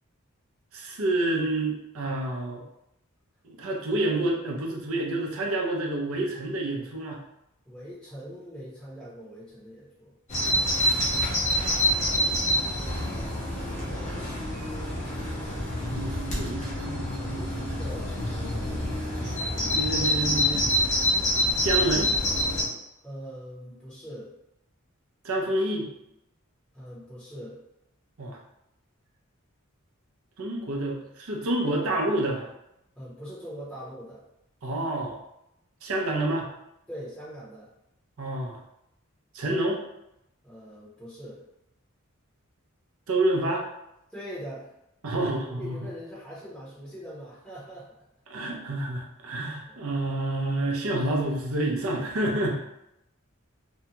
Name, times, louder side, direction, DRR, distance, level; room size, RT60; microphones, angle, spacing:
voice 1, 0.7-2.6 3.4-7.2 10.9-11.1 15.9-17.8 18.7-19.4 19.7-21.0 21.6-22.2 25.2-25.9 28.2-28.4 30.4-32.5 34.6-35.2 35.8-36.5 38.2-38.6 39.3-39.8 43.1-43.7 45.0-45.9 48.3-52.5, right 1 dB, 80° right, 0 dB, 0.6 m, -29 dB
voice 2, 7.6-10.1 17.8-18.1 18.5-19.1 23.0-24.3 26.7-27.6 33.0-34.2 36.9-37.7 40.4-41.4 44.1-44.7 45.0-47.9, equal, 5° left, -10 dB, 0.8 m, -42 dB
Bird vocalization bird call bird song, 10.3-22.6, equal, 35° left, 0.8 m, -27 dB
sound 1, 12.9-20.8, left 1 dB, 85° left, 0.7 m, -37 dB
2.7 x 2.2 x 2.8 m, 0.84 s
head